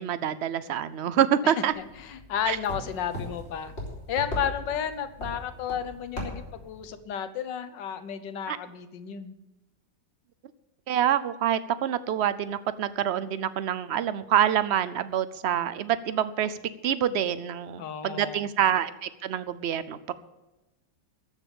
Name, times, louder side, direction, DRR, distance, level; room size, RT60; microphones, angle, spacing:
voice 1, 0.0-1.7 2.5-2.6 8.5-8.6 10.9-16.6 16.8-20.1, right 10 dB, 75° right, 14 dB, 0.6 m, -26 dB
sound 1, 1.7-6.9, left 1 dB, 35° left, 4.0 m, -39 dB
voice 2, 2.0-3.7 4.1-9.3 17.8-18.4, left 8 dB, 85° left, 12 dB, 1.6 m, -32 dB
14.0 x 6.8 x 8.9 m, 1.0 s
omnidirectional pair, 1.9 m